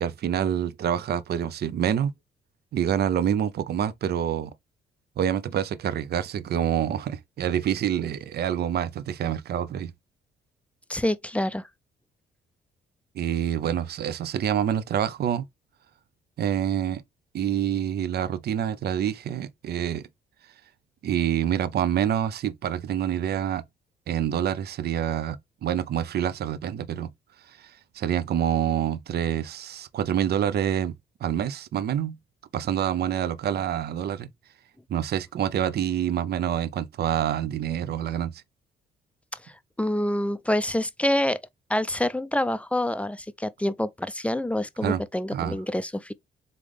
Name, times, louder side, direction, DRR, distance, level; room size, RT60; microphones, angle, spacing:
voice 1, 0.0-2.1 2.7-4.5 5.2-9.9 13.2-15.4 16.4-17.0 17.3-20.1 21.0-23.6 24.1-27.1 28.0-30.9 31.2-32.2 32.5-34.3 34.9-38.3 44.8-45.0 45.3-45.6, right 9 dB, 55° right, 0.5 m, -27 dB
voice 2, 10.9-11.7 39.4-39.5 39.8-41.4 41.7-46.1, left 1 dB, 5° left, 0.4 m, -27 dB
3.7 x 3.4 x 3.5 m
cardioid pair, 70°, 20 cm